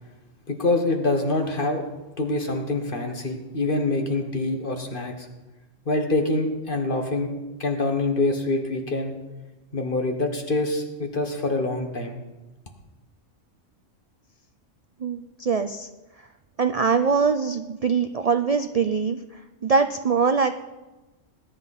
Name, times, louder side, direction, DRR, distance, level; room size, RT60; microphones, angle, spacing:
voice 1, 0.5-1.8 2.2-5.3 5.8-7.3 7.6-9.2 9.7-12.2, left 2 dB, 40° left, 4 dB, 1.7 m, -25 dB
voice 2, 15.0-15.9 16.6-20.5, right 5 dB, 55° right, 9 dB, 0.4 m, -23 dB
19.5 x 10.5 x 4.3 m, 1.1 s
omnidirectional pair, 1.4 m